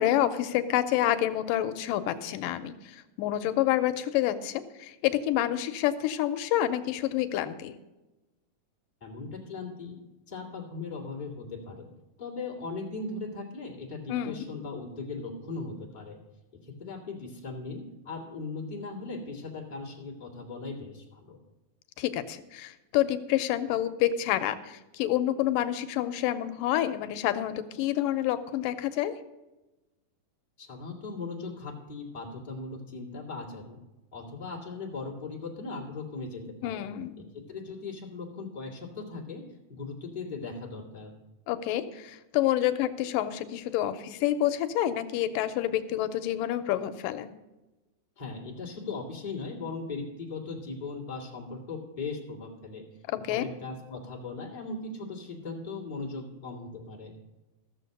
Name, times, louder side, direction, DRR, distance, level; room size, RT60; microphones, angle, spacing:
voice 1, 0.0-7.8 14.1-14.4 22.0-29.1 36.6-37.2 41.5-47.3 53.1-53.5, left 12 dB, 90° left, 11 dB, 2.3 m, -28 dB
voice 2, 9.0-10.0 10.3-11.9 12.2-16.2 16.6-21.4 30.6-33.8 34.1-36.8 37.3-39.4 39.7-41.1 48.2-52.8 53.3-57.1, left 3 dB, 15° left, -2 dB, 2.0 m, -38 dB
14.5 x 7.0 x 6.6 m, 1.0 s
omnidirectional pair, 3.8 m